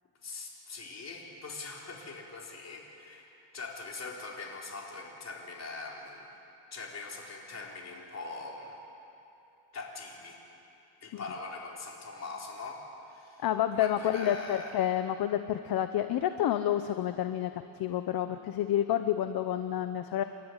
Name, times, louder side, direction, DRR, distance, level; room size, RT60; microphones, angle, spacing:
voice 1, 0.2-6.3 6.7-8.8 9.7-10.4 11.0-13.5 13.7-14.7, left 3 dB, 35° left, -1 dB, 4.1 m, -42 dB
voice 2, 13.4-20.2, left 11 dB, 50° left, 9 dB, 0.9 m, -29 dB
29.5 x 13.0 x 9.9 m, 2.8 s
cardioid pair, 145°, 46 cm